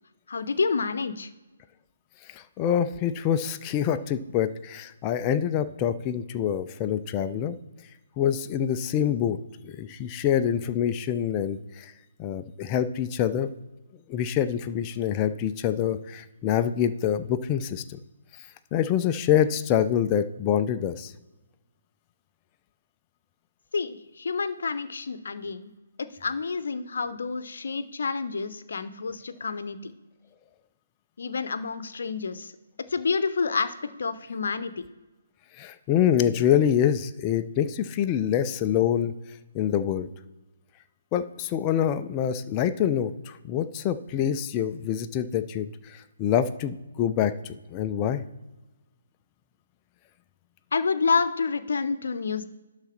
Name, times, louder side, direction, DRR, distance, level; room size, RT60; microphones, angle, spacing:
voice 1, 0.3-1.3 23.7-25.7 26.0-29.9 31.2-32.5 32.9-34.8 50.7-52.4, left 4 dB, 60° left, 12 dB, 0.9 m, -29 dB
voice 2, 2.3-7.6 8.2-9.4 9.6-11.9 12.2-13.5 14.1-18.0 18.7-21.1 35.6-39.1 39.5-40.1 41.1-48.2, left 9 dB, 25° left, 10 dB, 0.6 m, -26 dB
11.5 x 4.1 x 6.0 m, 1.1 s
figure-of-eight pair, 135°, 0 cm